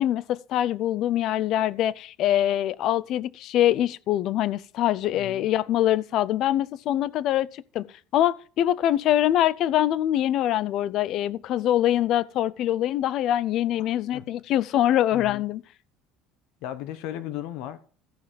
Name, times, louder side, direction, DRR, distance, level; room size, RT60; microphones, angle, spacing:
voice 1, 0.0-7.8 8.1-15.6, left 12 dB, 50° left, 0.5 m, -24 dB
voice 2, 5.1-5.5 13.8-13.9 14.1-14.3 15.1-15.4 16.6-17.8, left 12 dB, 70° left, 1.1 m, -36 dB
14.0 x 5.0 x 5.7 m
cardioid pair, 140°, 0 cm